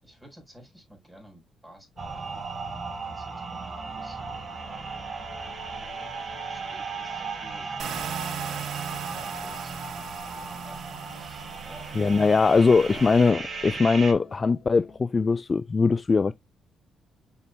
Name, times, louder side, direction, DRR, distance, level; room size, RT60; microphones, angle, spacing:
voice 1, 0.0-5.0 6.2-12.1 12.9-13.2, equal, ahead, 4.3 m, -51 dB
sound 1, 1.9-15.0, left 6 dB, 80° left, 3.2 m, -50 dB
sound 2, 2.0-14.1, right 5 dB, 40° right, 2.3 m, -36 dB
sound 3, 7.8-13.3, right 8 dB, 75° right, 1.1 m, -40 dB
voice 2, 12.0-16.3, left 4 dB, 30° left, 0.3 m, -21 dB
6.9 x 6.1 x 2.2 m
cardioid pair, 90°, 0 cm